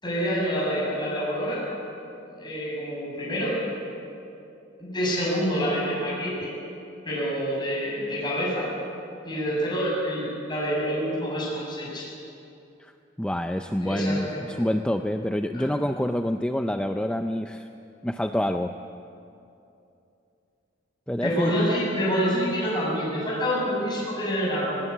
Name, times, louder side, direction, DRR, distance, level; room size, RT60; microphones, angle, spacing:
voice 1, 0.0-1.6 2.4-3.5 4.8-6.5 7.0-8.6 9.2-12.0 13.8-14.2 14.5-14.6 15.5-15.7 21.2-24.8, equal, 25° left, -5 dB, 7.2 m, -27 dB
voice 2, 13.2-17.7 18.0-18.7 21.1-21.6, left 1 dB, 5° left, 6 dB, 0.4 m, -27 dB
19.5 x 19.0 x 8.4 m, 2.7 s
head